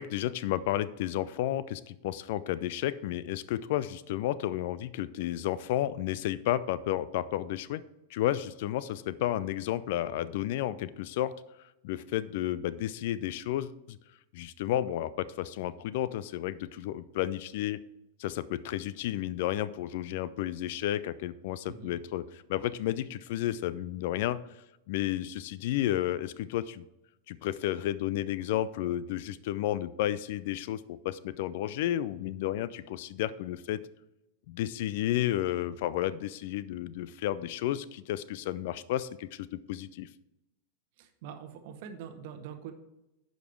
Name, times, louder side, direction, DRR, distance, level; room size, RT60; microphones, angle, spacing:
voice 1, 0.0-7.8 8.1-11.3 11.8-14.0 14.3-17.8 18.2-24.4 24.9-26.8 27.3-33.8 34.5-40.1, left 13 dB, 50° left, 17 dB, 0.3 m, -32 dB
voice 2, 41.0-42.7, right 8 dB, 50° right, 7 dB, 1.0 m, -44 dB
10.5 x 5.2 x 4.6 m, 0.92 s
figure-of-eight pair, 90°, 0 cm